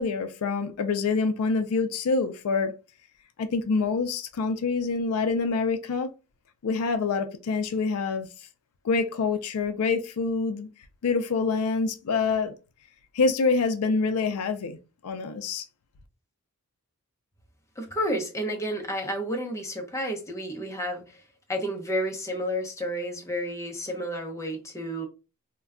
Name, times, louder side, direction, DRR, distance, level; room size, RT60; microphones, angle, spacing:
voice 1, 0.0-2.8 3.4-6.1 6.6-8.3 8.8-10.7 11.0-12.5 13.1-14.8 15.0-15.6, left 4 dB, 80° left, 0.4 m, -26 dB
voice 2, 17.8-21.2 21.5-25.1, equal, 15° left, 0.6 m, -31 dB
2.2 x 2.2 x 3.5 m
head